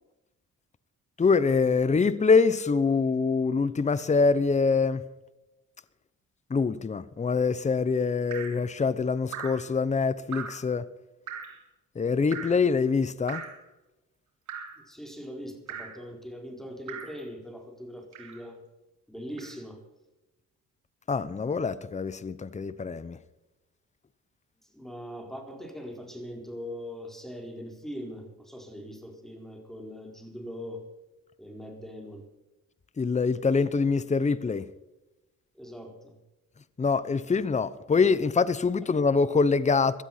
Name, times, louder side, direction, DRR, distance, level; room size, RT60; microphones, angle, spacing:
voice 1, 1.2-5.0 6.5-10.9 12.0-13.4 21.1-23.2 33.0-34.7 36.8-40.0, left 4 dB, 25° left, 0.9 m, -24 dB
Drip, 8.3-8.6 9.3-9.7 10.3-10.7 11.3-11.6 12.3-12.7 13.3-13.6 14.5-14.8 15.7-16.0 16.9-17.2 18.1-18.5 19.4-19.6, right 7 dB, 70° right, 3.8 m, -39 dB
voice 2, 14.8-18.6 19.1-19.8 24.7-30.8 31.4-32.3 35.5-36.1, equal, ahead, 4.4 m, -41 dB
17.0 x 12.5 x 5.8 m
cardioid pair, 90°, 30 cm